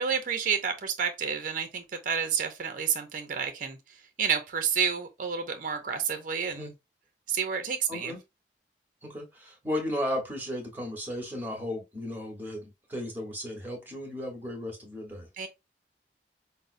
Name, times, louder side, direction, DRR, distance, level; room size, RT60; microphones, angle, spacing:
voice 1, 0.0-3.8 4.2-6.7 7.3-8.1 15.4-15.5, right 7 dB, 50° right, 0.6 m, -30 dB
voice 2, 7.9-8.2 9.0-15.3, left 1 dB, 10° right, 1.1 m, -35 dB
5.2 x 2.0 x 2.5 m
head